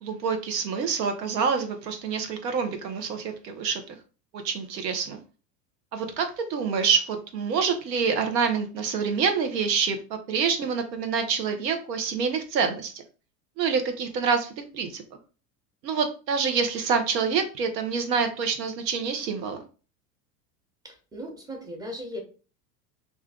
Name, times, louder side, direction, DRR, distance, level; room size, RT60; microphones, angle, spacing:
voice 1, 0.0-4.0 4.4-5.2 5.9-12.9 13.6-15.0 15.8-19.6, right 6 dB, 85° right, 6 dB, 0.8 m, -27 dB
voice 2, 20.8-22.2, equal, 10° right, 2 dB, 0.8 m, -37 dB
2.6 x 2.2 x 3.5 m, 0.35 s
hypercardioid pair, 95°, 49 cm